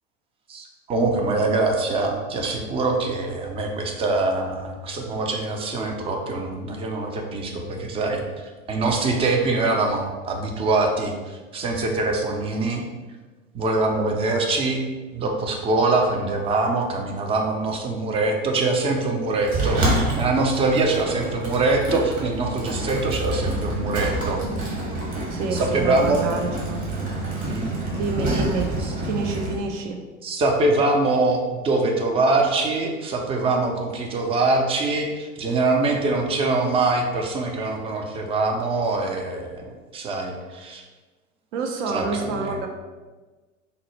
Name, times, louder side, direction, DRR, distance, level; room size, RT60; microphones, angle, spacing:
voice 1, 0.5-8.2 8.7-12.8 13.5-14.8 15.1-19.8 20.1-24.4 25.5-26.2 27.5-27.7 30.2-39.6 39.9-40.8 41.9-42.4, right 3 dB, 15° right, 2 dB, 0.3 m, -23 dB
Sliding door, 19.5-29.5, right 1 dB, 45° right, 1.2 m, -27 dB
voice 2, 25.3-26.9 27.5-28.7 29.0-30.0 40.5-40.7 41.5-42.7, right 3 dB, 65° right, 4 dB, 0.6 m, -29 dB
3.8 x 2.1 x 3.1 m, 1.3 s
hypercardioid pair, 80°, 39 cm